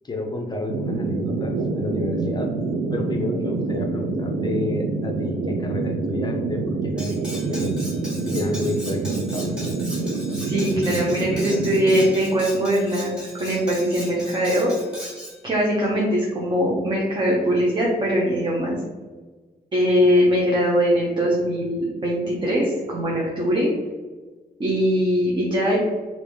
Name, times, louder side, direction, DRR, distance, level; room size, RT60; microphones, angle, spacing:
voice 1, 0.0-2.5 2.9-7.9 8.2-9.6, left 2 dB, 25° left, 2 dB, 0.5 m, -30 dB
sound 1, 0.7-12.1, right 3 dB, 75° right, 0.4 m, -26 dB
Cutlery silverware, 7.0-15.4, equal, 5° right, 1.3 m, -38 dB
voice 2, 10.4-14.7 15.4-18.7 19.7-23.7 24.6-25.8, equal, 30° right, -4 dB, 0.6 m, -21 dB
3.3 x 2.5 x 3.4 m, 1.4 s
wide cardioid pair, 150°, 16 cm